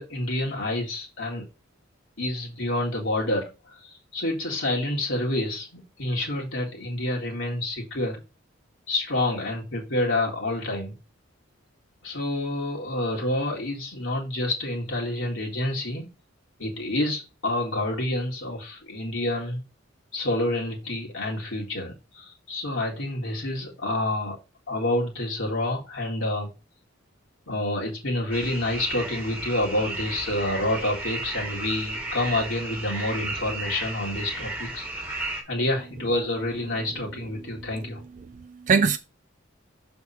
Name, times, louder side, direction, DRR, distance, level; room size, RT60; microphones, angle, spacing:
voice 1, 0.0-1.4 2.2-8.2 8.9-10.9 12.0-16.1 16.6-19.6 20.1-24.4 24.7-26.5 27.5-38.0, left 1 dB, 70° left, 1.8 m, -28 dB
sound 1, 28.3-35.4, right 2 dB, 10° right, 1.4 m, -34 dB
voice 2, 37.5-37.9 38.1-39.0, right 5 dB, 40° right, 0.4 m, -24 dB
6.4 x 3.5 x 5.5 m
head